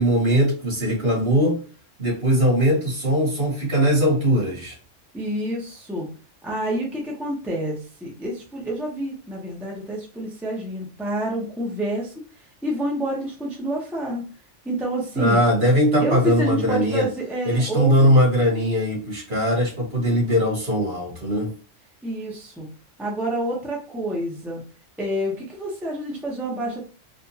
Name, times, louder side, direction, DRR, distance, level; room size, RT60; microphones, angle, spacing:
voice 1, 0.0-1.6 2.0-4.8 15.2-17.1 17.4-21.5, equal, 50° right, -2 dB, 2.1 m, -20 dB
voice 2, 5.1-6.1 6.4-12.1 12.6-14.2 14.6-15.4 16.0-18.1 22.0-22.7 23.0-24.6 25.0-26.8, right 1 dB, ahead, -3 dB, 0.9 m, -28 dB
4.3 x 2.5 x 2.8 m, 0.39 s
omnidirectional pair, 1.3 m